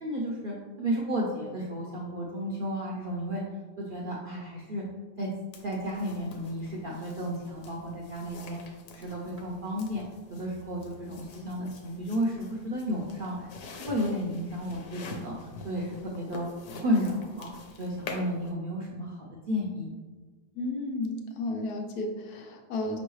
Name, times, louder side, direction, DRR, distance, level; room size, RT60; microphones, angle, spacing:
voice 1, 0.0-3.4 3.8-4.8 5.2-5.3 5.6-8.6 8.9-10.0 10.3-13.5 13.9-15.4 15.6-16.5 16.8-17.5 17.8-19.9, equal, 65° right, -4 dB, 0.5 m, -32 dB
sound 1, 5.5-18.5, left 3 dB, 70° left, 1.0 m, -46 dB
voice 2, 20.6-23.0, left 2 dB, 90° left, 2 dB, 1.2 m, -33 dB
5.3 x 3.1 x 3.1 m, 1.3 s
omnidirectional pair, 1.6 m